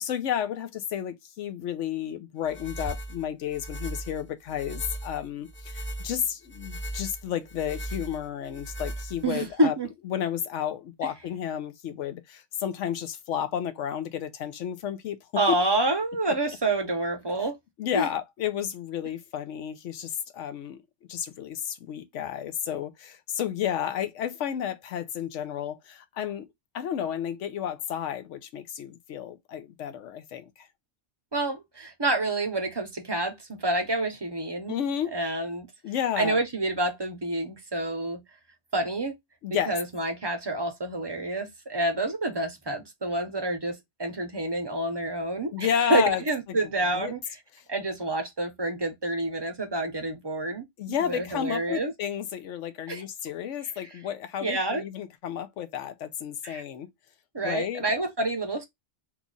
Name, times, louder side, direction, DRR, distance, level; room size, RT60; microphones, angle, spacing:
voice 1, 0.0-9.7 10.0-15.2 17.8-20.8 21.1-26.5 26.7-30.7 34.7-35.2 35.8-36.4 39.4-39.7 45.5-46.2 46.6-47.1 50.8-56.9 57.4-57.9, left 9 dB, 85° left, 1.0 m, -32 dB
sound 1, 2.4-9.5, right 1 dB, 10° left, 0.7 m, -38 dB
voice 2, 9.2-9.9 15.4-17.5 17.9-18.1 31.3-34.7 35.1-35.7 36.2-38.2 38.7-39.1 39.7-47.2 47.7-51.9 52.9-53.0 54.4-54.8 56.4-56.6 57.3-58.6, right 2 dB, 30° right, 0.5 m, -28 dB
3.0 x 2.3 x 3.8 m
omnidirectional pair, 1.2 m